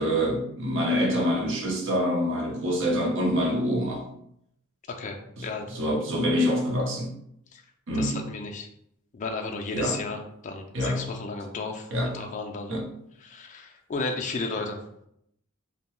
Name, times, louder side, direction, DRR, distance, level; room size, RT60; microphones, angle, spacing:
voice 1, 0.0-4.1 5.4-7.1 7.9-8.2 9.7-10.0 10.7-11.0 11.9-12.1 12.7-12.9, equal, 60° right, 1 dB, 0.7 m, -26 dB
voice 2, 4.9-5.7 7.5-7.6 7.9-8.7 9.1-12.7 13.2-14.8, left 3 dB, 35° left, 2 dB, 0.3 m, -34 dB
2.7 x 2.2 x 3.0 m, 0.74 s
head